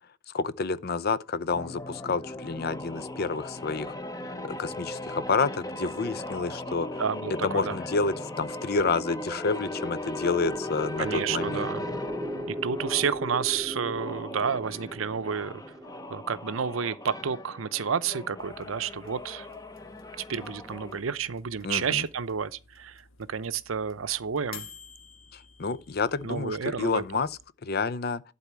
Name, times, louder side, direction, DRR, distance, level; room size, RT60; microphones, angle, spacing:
voice 1, 0.3-4.0 4.4-7.0 7.4-11.7 21.6-22.0 25.3-27.3 27.6-28.2, left 4 dB, 50° left, 0.6 m, -29 dB
sound 1, 1.5-13.2 13.9-21.0, left 1 dB, 20° left, 0.9 m, -38 dB
voice 2, 6.7-7.8 11.0-11.8 12.5-15.6 16.1-19.5 20.2-24.7 26.2-27.3, right 6 dB, 75° right, 0.6 m, -30 dB
sound 2, 9.0-17.1, right 1 dB, 20° right, 0.5 m, -38 dB
sound 3, 18.4-27.5, left 6 dB, 80° left, 1.1 m, -52 dB
11.5 x 4.2 x 7.2 m
head